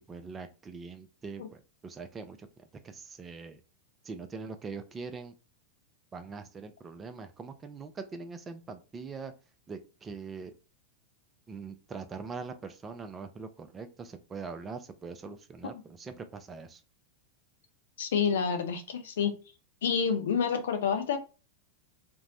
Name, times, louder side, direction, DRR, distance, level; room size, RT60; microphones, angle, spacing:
voice 1, 0.1-3.6 4.0-5.3 6.1-9.3 9.7-10.5 11.5-16.8, right 4 dB, 20° right, 8 dB, 0.4 m, -42 dB
voice 2, 18.0-19.3 19.8-21.2, left 6 dB, 60° left, 7 dB, 0.5 m, -28 dB
2.5 x 2.0 x 3.8 m, 0.32 s
figure-of-eight pair, 90°, 0 cm